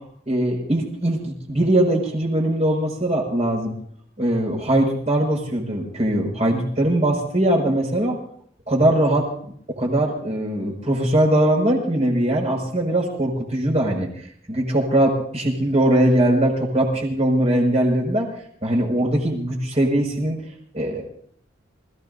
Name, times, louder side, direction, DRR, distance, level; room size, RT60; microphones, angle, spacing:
voice 1, 0.3-3.7 4.2-8.1 8.7-9.3 9.7-14.1 14.5-18.3 18.6-20.4 20.7-21.0, right 1 dB, 35° right, 0 dB, 5.8 m, -21 dB
28.0 x 17.0 x 2.7 m, 0.63 s
head